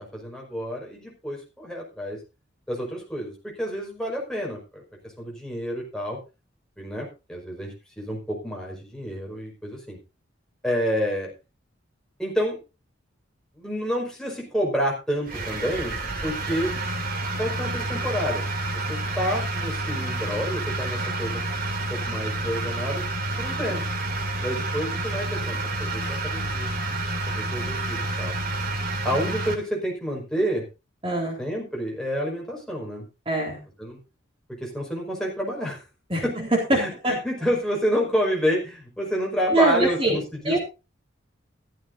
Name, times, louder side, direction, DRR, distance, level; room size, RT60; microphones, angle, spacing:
voice 1, 0.0-2.2 2.7-4.8 5.2-6.2 6.8-10.0 10.6-11.3 12.2-12.6 13.5-16.0 16.2-16.7 17.4-21.4 21.9-23.0 23.4-23.8 24.4-26.7 27.3-28.3 29.0-30.7 31.4-33.1 33.8-34.0 34.5-35.8 36.2-36.4 36.7-40.6, equal, 5° left, -2 dB, 5.3 m, -29 dB
sound 1, 15.3-29.5, right 2 dB, 45° right, 2.9 m, -29 dB
voice 2, 31.0-31.4 33.3-33.6 36.1-37.2 39.5-40.2 40.4-40.6, right 2 dB, 25° right, 1 dB, 4.0 m, -23 dB
14.5 x 14.5 x 2.7 m, 0.29 s
head